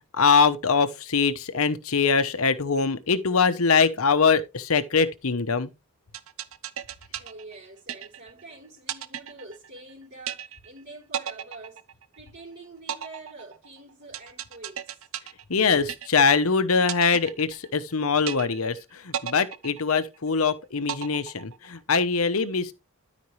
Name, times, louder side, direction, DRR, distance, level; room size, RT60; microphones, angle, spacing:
voice 1, 0.1-5.7 15.5-22.7, left 5 dB, 70° left, 1.0 m, -23 dB
sound 1, 6.1-8.4 8.9-9.9 10.3-10.8 11.1-12.4 12.9-16.4 16.9-17.9 18.3-18.8 19.1-20.4 20.9-21.9, right 9 dB, 70° right, 0.8 m, -35 dB
voice 2, 7.1-11.9 12.2-15.1, right 2 dB, 50° right, 3.8 m, -46 dB
12.5 x 5.2 x 3.2 m
head